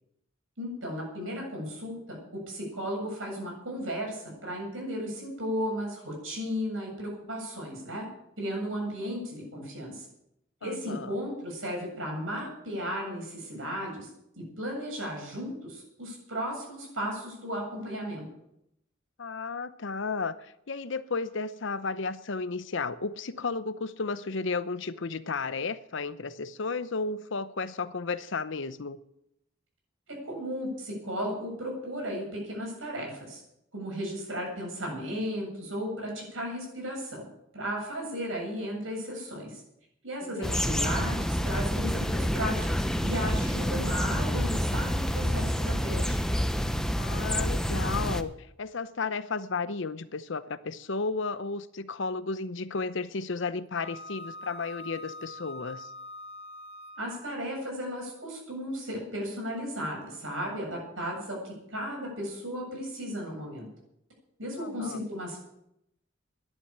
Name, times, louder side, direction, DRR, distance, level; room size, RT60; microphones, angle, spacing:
voice 1, 0.6-8.1 8.4-10.1 10.6-14.1 14.4-18.3 30.1-33.4 33.7-37.2 37.5-39.6 40.0-46.2 57.0-63.7 64.4-65.6, equal, 85° right, 7.7 m, -35 dB
voice 2, 10.6-11.2 19.2-29.0 40.2-40.9 47.0-55.9 64.6-65.0, left 4 dB, 70° left, 0.8 m, -33 dB
sound 1, 40.4-48.2, equal, 5° left, 0.7 m, -28 dB
Wind instrument woodwind instrument, 53.8-57.4, left 1 dB, 25° right, 1.3 m, -44 dB
11.5 x 10.5 x 8.5 m
head